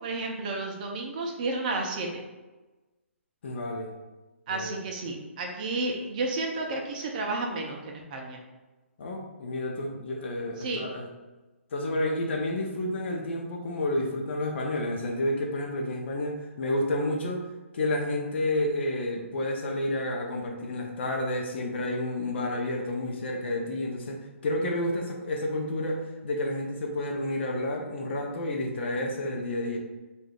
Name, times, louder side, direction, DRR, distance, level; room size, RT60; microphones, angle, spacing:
voice 1, 0.0-2.2 4.5-8.4 10.6-10.8, right 2 dB, 35° right, 1 dB, 0.6 m, -32 dB
voice 2, 3.4-3.9 4.5-4.8 9.0-11.1 11.7-17.5 17.7-29.8, left 1 dB, 55° left, 1 dB, 0.7 m, -30 dB
4.9 x 2.6 x 2.4 m, 1.2 s
hypercardioid pair, 145°, 7 cm